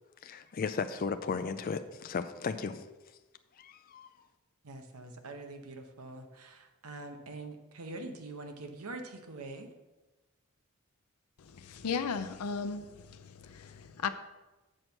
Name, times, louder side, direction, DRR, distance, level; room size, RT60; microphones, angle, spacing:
voice 1, 0.2-2.9 3.6-4.1, left 5 dB, 40° left, 0.4 m, -35 dB
voice 2, 4.6-9.7, right 2 dB, 80° right, 1.0 m, -44 dB
voice 3, 11.4-14.1, left 5 dB, 85° left, 0.5 m, -36 dB
7.6 x 4.5 x 6.5 m
head